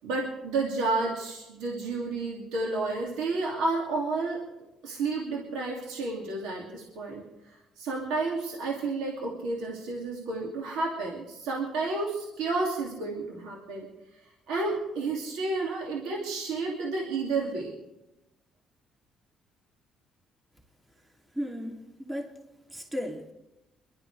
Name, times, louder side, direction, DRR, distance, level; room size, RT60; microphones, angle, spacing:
voice 1, 0.0-4.4 4.8-7.2 7.8-13.9 14.5-17.7, right 3 dB, 80° right, -2 dB, 2.7 m, -31 dB
voice 2, 21.3-22.3 22.7-23.3, equal, 15° right, 1 dB, 2.8 m, -35 dB
24.0 x 12.5 x 3.4 m, 0.95 s
supercardioid pair, 65°, 0 cm